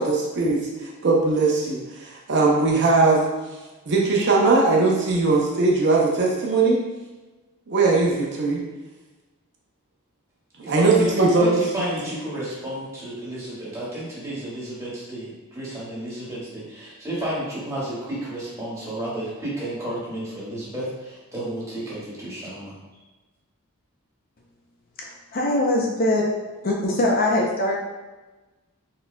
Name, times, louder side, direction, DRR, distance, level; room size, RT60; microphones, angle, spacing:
voice 1, 0.0-3.3 3.9-6.8 7.7-8.6 10.7-11.6, right 3 dB, 50° right, -2 dB, 0.6 m, -20 dB
voice 2, 10.6-22.7, right 1 dB, 15° right, -8 dB, 1.5 m, -32 dB
voice 3, 25.0-26.3 26.6-27.8, left 1 dB, 45° left, -1 dB, 0.6 m, -22 dB
4.2 x 4.2 x 2.2 m, 1.2 s
head